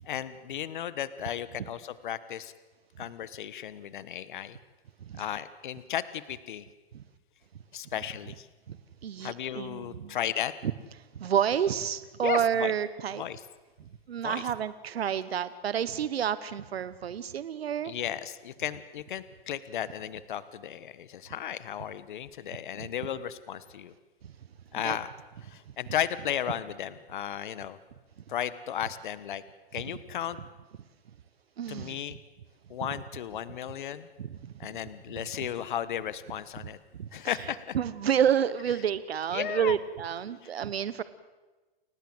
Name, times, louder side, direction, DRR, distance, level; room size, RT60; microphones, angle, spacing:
voice 1, 0.1-2.5 3.0-4.6 5.2-6.6 7.7-8.5 9.2-10.5 12.2-12.7 13.2-13.4 14.2-14.4 17.8-23.9 24.7-25.1 25.5-27.8 28.3-29.4 29.7-30.4 31.7-32.2 32.7-34.1 34.6-36.8 37.1-37.7 39.3-39.8, left 10 dB, 55° left, 16 dB, 1.3 m, -34 dB
voice 2, 9.0-10.1 10.6-10.7 11.2-13.2 14.1-17.9 22.8-22.9 24.8-25.0 31.6-32.0 34.2-34.4 37.0-37.1 37.7-41.0, right 9 dB, 85° right, 15 dB, 1.2 m, -29 dB
30.0 x 16.0 x 7.9 m, 1.2 s
hypercardioid pair, 170°, 30 cm